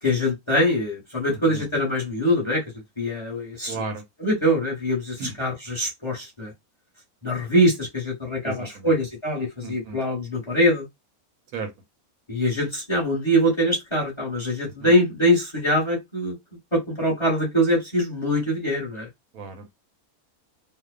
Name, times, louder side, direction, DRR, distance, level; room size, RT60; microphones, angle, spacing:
voice 1, 0.0-2.6 3.0-3.8 4.2-6.5 7.2-10.9 12.3-16.3 16.7-19.1, equal, 20° left, 0.9 m, -23 dB
voice 2, 1.3-1.6 3.7-4.0 5.2-5.3 8.4-8.9 9.6-10.0 11.5-11.7 14.8-14.9 19.3-19.7, right 4 dB, 80° right, 1.1 m, -34 dB
2.8 x 2.1 x 2.3 m
omnidirectional pair, 1.5 m